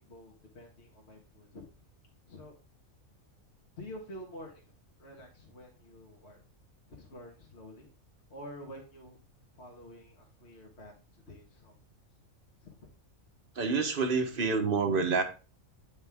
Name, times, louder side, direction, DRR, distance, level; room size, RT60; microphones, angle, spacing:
voice 1, 0.0-1.7 2.3-2.5 3.8-4.6 5.0-6.4 7.0-7.9 8.3-9.2 9.6-11.7 12.6-12.7, equal, 50° left, 0 dB, 1.8 m, -48 dB
voice 2, 13.6-15.2, right 4 dB, 45° right, 6 dB, 1.2 m, -28 dB
9.1 x 5.4 x 3.5 m, 0.33 s
omnidirectional pair, 1.4 m